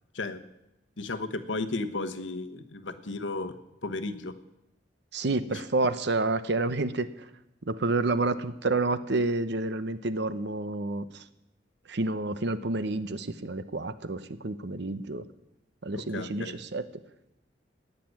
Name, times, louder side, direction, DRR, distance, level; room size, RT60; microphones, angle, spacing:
voice 1, 1.0-3.5 3.8-4.3 5.5-5.6 15.9-16.6, left 3 dB, 80° left, 9 dB, 1.2 m, -34 dB
voice 2, 5.1-7.1 7.7-11.2 11.9-15.2 15.8-16.8, right 2 dB, 65° right, 13 dB, 0.9 m, -29 dB
18.0 x 6.8 x 9.5 m, 0.89 s
head